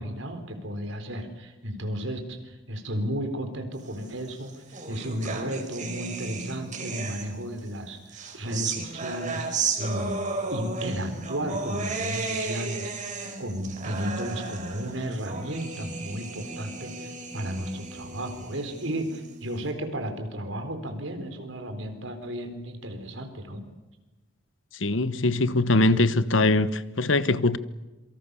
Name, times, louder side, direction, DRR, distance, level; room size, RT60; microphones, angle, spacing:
voice 1, 0.0-4.5 4.9-10.1 10.5-13.1 13.4-23.6, equal, 85° right, 4.3 m, -33 dB
sound 1, 4.2-7.6 8.1-19.6, right 4 dB, 40° right, 4.0 m, -34 dB
voice 2, 24.8-27.6, left 2 dB, 85° left, 1.1 m, -22 dB
27.0 x 24.0 x 7.0 m
head